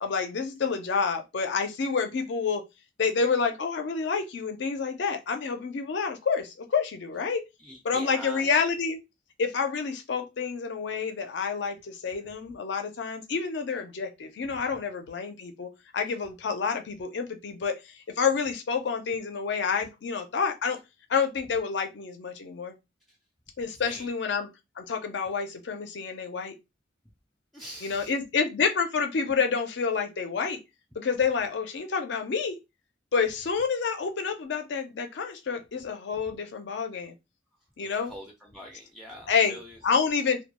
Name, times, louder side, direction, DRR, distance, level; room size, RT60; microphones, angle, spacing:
voice 1, 0.0-2.6 3.0-7.4 7.8-9.0 9.4-20.8 21.1-22.8 23.6-24.5 24.8-26.5 27.8-30.6 31.0-32.6 33.1-37.1 37.8-38.1 39.3-39.6 39.8-40.4, left 5 dB, 65° left, 0.5 m, -28 dB
voice 2, 7.6-8.5 14.4-14.8 23.1-23.2 23.7-24.1 27.5-28.2 36.1-36.3 37.8-40.0, equal, ahead, 0.3 m, -45 dB
2.2 x 2.1 x 2.9 m
head